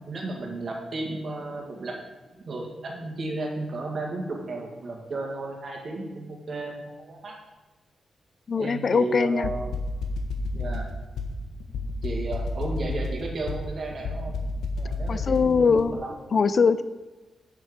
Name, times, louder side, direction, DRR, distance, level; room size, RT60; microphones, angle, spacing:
voice 1, 0.0-1.9 2.3-7.4 8.6-9.8 10.5-10.9 12.0-14.4 14.7-16.2, right 2 dB, 50° right, 0 dB, 1.9 m, -33 dB
voice 2, 8.5-9.5 15.1-16.0 16.3-16.8, left 5 dB, 50° left, 14 dB, 0.4 m, -22 dB
sound 1, 9.4-15.8, left 2 dB, 90° left, 1.0 m, -31 dB
7.5 x 6.8 x 5.1 m, 1.2 s
cardioid pair, 100°, 0 cm